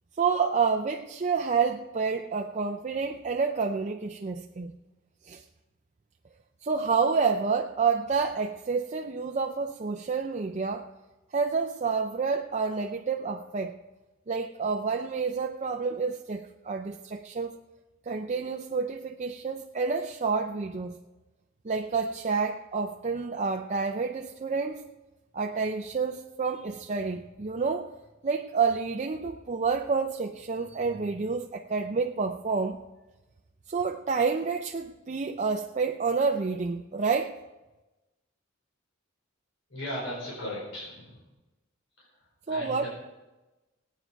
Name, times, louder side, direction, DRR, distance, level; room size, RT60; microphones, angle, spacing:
voice 1, 0.2-4.7 5.2-5.4 6.6-10.9 11.3-13.8 14.3-17.6 18.1-21.0 21.6-24.8 25.3-27.9 28.2-32.8 33.7-37.4 42.5-42.9, right 5 dB, 35° right, 3 dB, 0.5 m, -29 dB
voice 2, 39.7-41.2 42.0-42.1 42.5-42.9, left 1 dB, 65° left, -5 dB, 4.9 m, -37 dB
18.0 x 9.2 x 4.6 m, 1.1 s
head